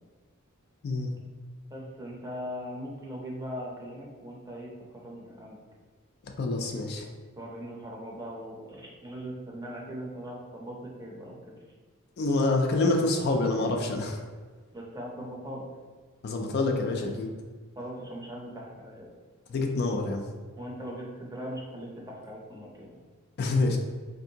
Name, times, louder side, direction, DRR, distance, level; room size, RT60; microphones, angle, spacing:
voice 1, 1.7-5.6 7.4-11.5 14.7-15.6 17.8-19.1 20.6-23.0, equal, 15° right, -3 dB, 0.6 m, -40 dB
voice 2, 6.4-7.1 12.2-14.2 16.2-17.3 19.5-20.2 23.4-23.8, left 2 dB, 50° left, 2 dB, 0.4 m, -26 dB
3.4 x 2.6 x 2.7 m, 1.5 s
head